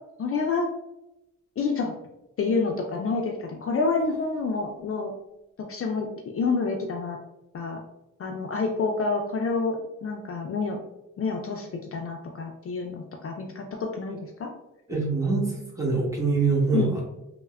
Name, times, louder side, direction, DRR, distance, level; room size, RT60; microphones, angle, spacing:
voice 1, 0.2-0.7 1.6-1.9 2.4-5.1 5.7-6.1 6.3-7.2 7.5-7.8 8.2-10.8 11.2-14.5 16.7-16.9, left 4 dB, 45° left, 2 dB, 0.4 m, -28 dB
voice 2, 14.9-17.0, right 4 dB, 10° right, -4 dB, 1.1 m, -24 dB
3.2 x 2.1 x 2.3 m, 0.92 s
cardioid pair, 55°, 31 cm